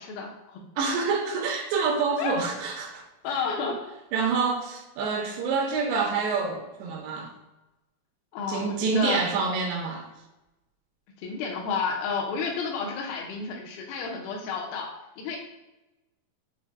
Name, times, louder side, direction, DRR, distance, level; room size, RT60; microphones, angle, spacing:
voice 1, 0.0-0.6 2.2-2.3 3.2-3.8 8.3-9.2 11.2-14.9 15.2-15.4, left 5 dB, 75° left, 0 dB, 2.4 m, -31 dB
voice 2, 0.8-3.0 4.1-7.3 8.5-10.1, right 4 dB, 85° right, 1 dB, 2.8 m, -27 dB
7.1 x 3.2 x 2.2 m, 0.99 s
omnidirectional pair, 4.9 m